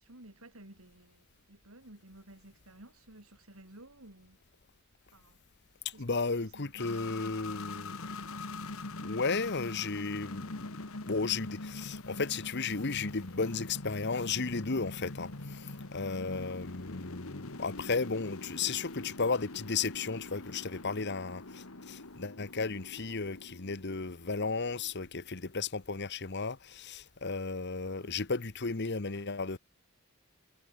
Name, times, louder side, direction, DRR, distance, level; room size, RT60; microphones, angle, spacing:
voice 1, 0.0-4.4 5.1-5.4 5.9-6.0 6.4-6.9 27.9-28.2, right 1 dB, 75° right, 4.6 m, -54 dB
voice 2, 6.0-29.6, left 4 dB, 50° left, 1.2 m, -34 dB
sound 1, 6.8-25.3, left 2 dB, 75° left, 2.0 m, -44 dB
head